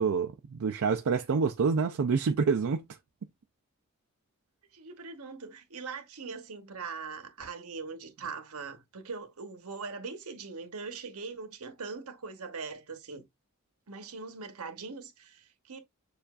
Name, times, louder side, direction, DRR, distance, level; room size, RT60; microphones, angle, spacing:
voice 1, 0.0-2.8, right 5 dB, 65° right, 0.4 m, -27 dB
voice 2, 4.7-13.3 13.9-15.8, right 4 dB, 90° right, 1.0 m, -41 dB
6.8 x 2.5 x 2.4 m
head